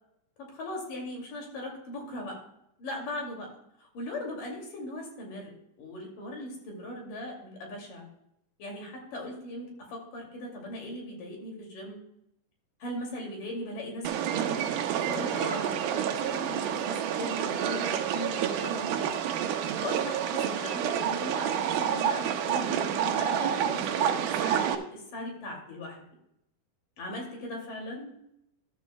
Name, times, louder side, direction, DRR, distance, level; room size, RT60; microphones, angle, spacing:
voice 1, 0.4-2.4 2.8-3.5 3.8-5.5 5.8-8.1 8.6-12.0 12.8-14.5 15.0-19.1 19.8-26.0 27.0-28.2, left 1 dB, 60° left, 0 dB, 4.0 m, -39 dB
sound 1, 14.0-24.8, right 9 dB, 80° right, 2.7 m, -29 dB
13.0 x 12.5 x 2.2 m, 0.77 s
omnidirectional pair, 4.3 m